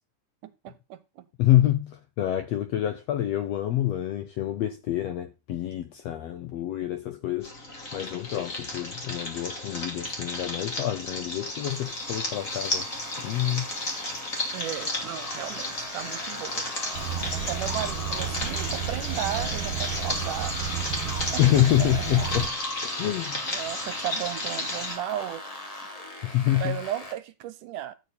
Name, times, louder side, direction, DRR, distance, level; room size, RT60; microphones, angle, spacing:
voice 1, 0.4-1.3 14.5-16.7 17.3-20.7 21.3-21.4 21.8-22.3 23.4-25.4 26.6-27.9, right 12 dB, 80° right, 2.4 m, -35 dB
voice 2, 1.4-7.5 7.9-12.9 13.2-13.7 21.4-22.5 23.0-23.4 26.2-26.8, left 13 dB, 80° left, 1.5 m, -26 dB
sound 1, 7.4-24.9, left 1 dB, 25° left, 2.9 m, -33 dB
sound 2, 11.4-27.1, left 1 dB, 45° left, 0.4 m, -40 dB
sound 3, 16.9-22.5, right 9 dB, 55° right, 1.9 m, -32 dB
12.5 x 8.5 x 4.1 m
omnidirectional pair, 3.7 m